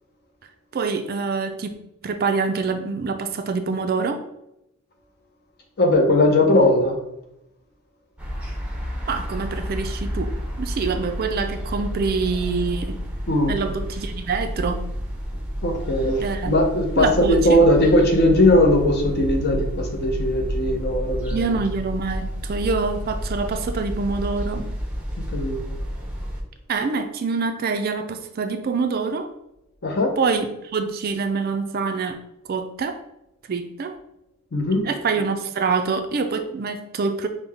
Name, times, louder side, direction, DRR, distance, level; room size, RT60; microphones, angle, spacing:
voice 1, 0.7-1.7 2.0-4.2 9.1-10.3 10.6-13.0 13.5-14.8 16.2-16.6 17.0-17.6 21.3-24.7 26.7-29.3 30.2-32.2 32.5-33.0 33.5-34.0 34.8-37.3, right 4 dB, 45° right, 7 dB, 0.4 m, -25 dB
voice 2, 5.8-7.0 13.3-13.5 15.6-21.6 25.3-25.6 29.8-30.1 34.5-34.9, left 1 dB, 50° left, 3 dB, 0.7 m, -19 dB
sound 1, 8.2-26.4, equal, 5° right, 0.6 m, -30 dB
5.4 x 2.1 x 3.4 m, 0.85 s
head